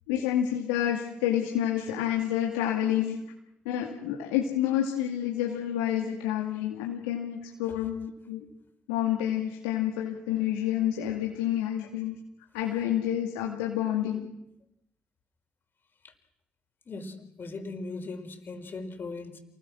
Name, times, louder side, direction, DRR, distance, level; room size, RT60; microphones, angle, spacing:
voice 1, 0.1-3.2 3.6-8.5 8.9-12.1 12.5-14.3, left 11 dB, 80° left, 0 dB, 2.4 m, -29 dB
voice 2, 16.8-19.4, left 3 dB, 45° left, 5 dB, 5.0 m, -39 dB
28.0 x 21.0 x 6.3 m, 0.85 s
hypercardioid pair, 40°, 5 cm